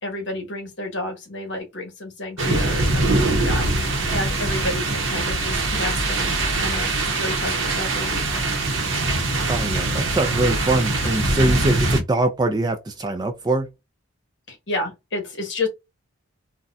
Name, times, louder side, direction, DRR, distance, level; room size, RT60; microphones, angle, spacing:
voice 1, 0.0-3.7 4.1-8.3 14.5-15.7, left 2 dB, 55° left, 1.1 m, -30 dB
sound 1, 2.4-12.0, right 2 dB, 65° right, 0.8 m, -22 dB
voice 2, 9.5-13.7, right 2 dB, 20° right, 0.3 m, -23 dB
4.0 x 2.2 x 2.3 m
head